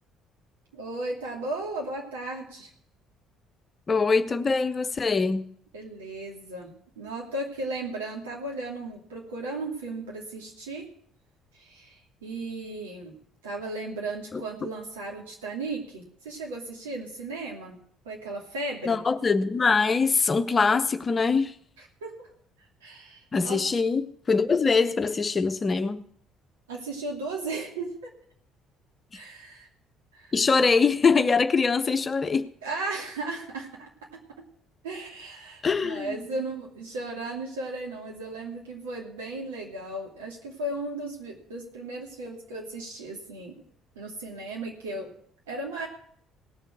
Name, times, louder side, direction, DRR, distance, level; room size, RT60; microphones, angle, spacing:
voice 1, 0.7-2.7 5.7-10.9 11.5-13.1 13.4-17.8 18.0-19.0 22.0-22.3 22.8-23.6 26.7-27.9 29.1-29.7 30.1-30.3 32.6-33.9 34.8-43.6 43.9-45.1 45.5-45.9, right 2 dB, 75° right, 2.7 m, -35 dB
voice 2, 3.9-5.4 14.3-14.4 18.8-21.6 23.3-26.0 30.3-32.5 35.6-36.3, left 4 dB, 30° left, 0.8 m, -23 dB
18.0 x 6.8 x 6.2 m
figure-of-eight pair, 50°, 0 cm